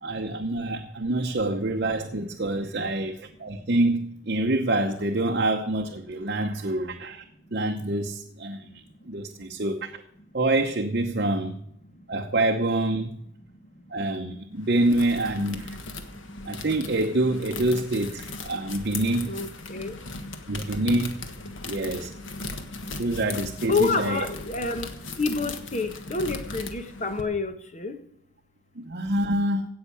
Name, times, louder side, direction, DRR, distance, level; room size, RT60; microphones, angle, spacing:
voice 1, 0.0-7.2 7.5-9.9 10.3-11.5 12.1-13.2 13.9-15.8 16.4-19.3 20.5-21.2 21.7-22.1 23.0-24.2 28.8-29.7, right 2 dB, 55° right, 0.9 m, -26 dB
sound 1, 14.6-27.2, left 3 dB, 85° left, 1.5 m, -38 dB
voice 2, 19.2-20.0 23.7-24.9 25.2-27.9, left 4 dB, 35° left, 1.2 m, -28 dB
16.5 x 5.7 x 8.6 m
head